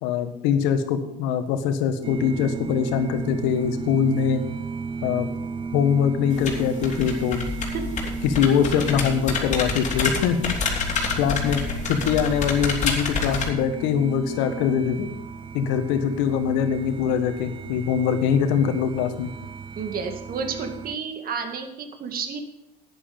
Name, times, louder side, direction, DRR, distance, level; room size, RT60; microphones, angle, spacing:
voice 1, 0.0-4.4 5.0-5.3 5.7-7.5 8.2-10.6 11.2-15.1 15.5-19.3, left 7 dB, 65° left, 8 dB, 1.6 m, -23 dB
sound 1, 2.0-21.0, right 5 dB, 25° right, 0.5 m, -35 dB
sound 2, 6.3-13.5, left 4 dB, 35° left, 3.1 m, -28 dB
voice 2, 19.8-22.4, right 5 dB, 45° right, 5 dB, 2.2 m, -31 dB
11.5 x 9.9 x 5.4 m, 0.85 s
hypercardioid pair, 80°, 21 cm